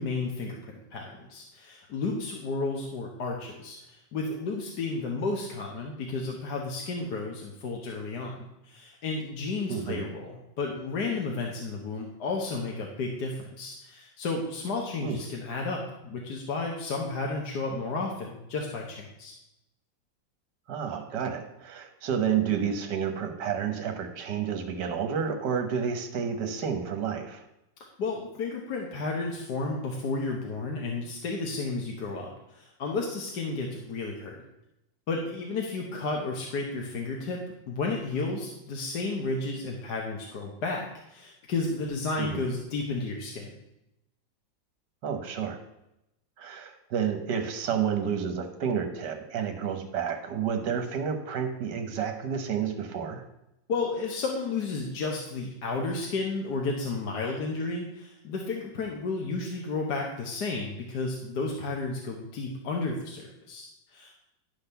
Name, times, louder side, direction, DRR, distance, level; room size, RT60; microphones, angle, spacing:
voice 1, 0.0-19.3 28.0-34.4 35.1-37.4 37.7-43.5 53.7-64.1, left 3 dB, 60° left, 0 dB, 1.6 m, -32 dB
voice 2, 9.7-10.1 15.0-15.2 20.7-27.4 42.2-42.5 45.0-45.6 46.4-53.2, right 7 dB, 65° right, 6 dB, 1.7 m, -30 dB
11.5 x 4.0 x 6.8 m, 0.88 s
omnidirectional pair, 2.1 m